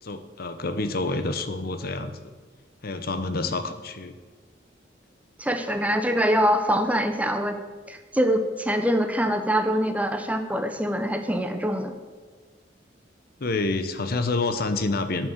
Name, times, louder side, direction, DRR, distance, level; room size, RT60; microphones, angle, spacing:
voice 1, 0.0-2.3 2.8-4.2 13.4-15.3, left 3 dB, 55° left, 10 dB, 0.9 m, -28 dB
voice 2, 5.4-7.5 7.9-11.9, equal, 10° right, 7 dB, 0.9 m, -24 dB
11.0 x 6.2 x 8.9 m, 1.5 s
head